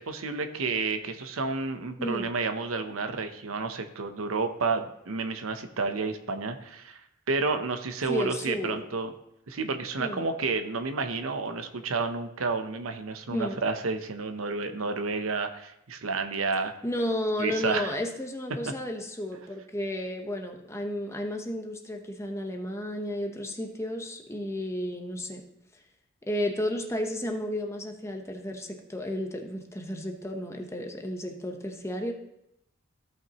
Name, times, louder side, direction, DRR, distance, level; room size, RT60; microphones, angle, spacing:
voice 1, 0.0-7.0 7.3-9.1 9.5-16.7 17.4-17.9, right 4 dB, 80° right, 7 dB, 0.8 m, -30 dB
voice 2, 8.1-8.8 10.0-10.3 13.3-13.6 16.8-25.4 26.3-32.1, left 1 dB, 15° left, 3 dB, 0.9 m, -32 dB
15.5 x 5.8 x 3.0 m, 0.81 s
head